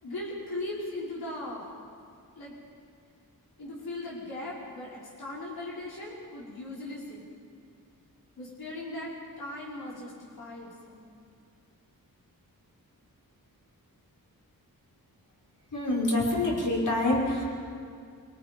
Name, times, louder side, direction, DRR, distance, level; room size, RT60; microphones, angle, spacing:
voice 1, 0.0-1.6 2.4-2.5 3.6-7.2 8.4-11.1, left 1 dB, 85° left, -6 dB, 5.3 m, -38 dB
voice 2, 15.7-17.4, left 1 dB, 55° left, -4 dB, 5.9 m, -26 dB
27.0 x 24.5 x 5.4 m, 2.2 s
wide cardioid pair, 95°, 36 cm